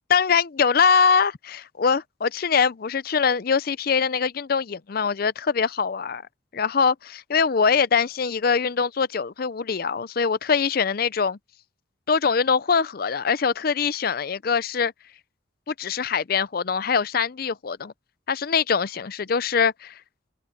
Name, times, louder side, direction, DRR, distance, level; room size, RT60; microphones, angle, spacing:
voice 1, 0.1-6.2 6.5-11.4 12.1-14.9 15.7-17.9 18.3-20.0, left 6 dB, 45° left, 0.5 m, -23 dB
head